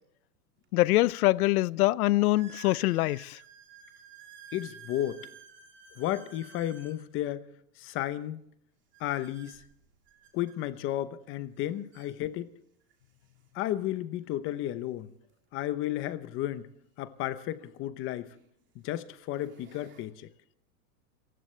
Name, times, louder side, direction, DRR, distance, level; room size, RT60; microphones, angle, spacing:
sound 1, 0.6-0.7 1.4-1.5 2.3-7.0 8.9-10.6 11.6-11.7 11.9-12.1 12.9-13.0 15.2-15.3 17.4-17.5 18.2-18.5 19.1-20.0, right 7 dB, 25° right, 3.0 m, -52 dB
voice 1, 0.7-3.4, left 18 dB, 65° left, 0.6 m, -24 dB
voice 2, 4.5-5.3 6.0-7.5 7.8-8.4 9.0-9.6 10.3-12.5 13.5-15.1 15.5-16.7 17.0-18.3 18.8-20.3, left 13 dB, 25° left, 0.9 m, -33 dB
28.5 x 15.5 x 3.3 m
supercardioid pair, 155°, 47 cm